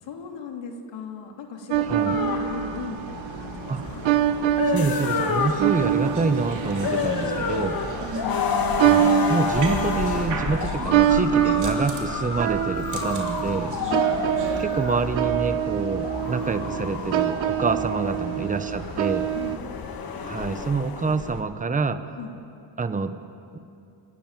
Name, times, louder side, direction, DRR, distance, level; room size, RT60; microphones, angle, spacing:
voice 1, 0.0-4.0 7.2-7.5 8.2-8.5 13.9-14.1 18.2-18.4 19.3-19.6 22.2-22.3, left 5 dB, 70° left, 2 dB, 3.0 m, -37 dB
sound 1, 1.7-19.6, right 10 dB, 80° right, 1.0 m, -26 dB
fire truck short good w horn, 2.1-21.4, left 5 dB, 50° left, 2.0 m, -30 dB
voice 2, 4.7-7.8 8.8-13.7 14.6-19.2 20.2-22.0 22.8-23.2, right 4 dB, 15° right, 10 dB, 0.9 m, -27 dB
sound 2, 5.0-14.6, right 3 dB, 40° right, 3.2 m, -37 dB
28.0 x 15.0 x 9.0 m, 2.7 s
cardioid pair, 170°, 46 cm